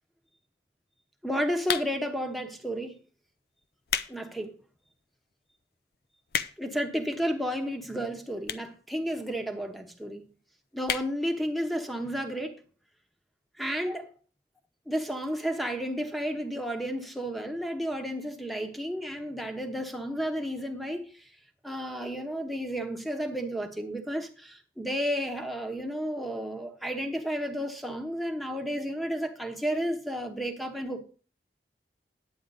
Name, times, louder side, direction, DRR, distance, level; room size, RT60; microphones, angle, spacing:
voice 1, 1.2-3.0 4.1-4.5 6.6-10.2 10.7-12.6 13.6-14.1 14.9-21.2 21.6-31.0, equal, ahead, 1.0 m, -32 dB
sound 1, 1.6-2.2 2.9-3.1 3.6-4.2 4.6-4.7 5.3-5.4 5.6-5.7 5.9-6.8 7.6-7.7 8.4-8.8 9.1-9.2 9.4-9.5 9.7-9.8 10.1-10.3 10.8-11.1 11.5-11.6 11.8-11.9, left 8 dB, 60° left, 0.6 m, -31 dB
10.0 x 8.6 x 4.0 m
head